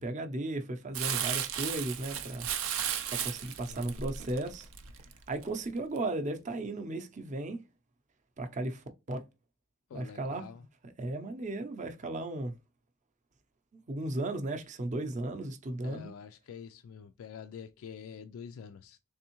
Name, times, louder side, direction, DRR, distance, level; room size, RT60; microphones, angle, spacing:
voice 1, 0.0-2.5 3.1-4.7 5.3-7.6 8.4-9.2 9.9-10.5 10.8-12.5 13.9-16.1, right 2 dB, 35° right, 0.5 m, -35 dB
Crumpling crinkling, 0.9-5.5 6.0-6.1, right 9 dB, 90° right, 0.5 m, -35 dB
voice 2, 9.9-10.6 15.8-19.0, left 7 dB, 80° left, 0.3 m, -47 dB
3.5 x 3.4 x 2.9 m
head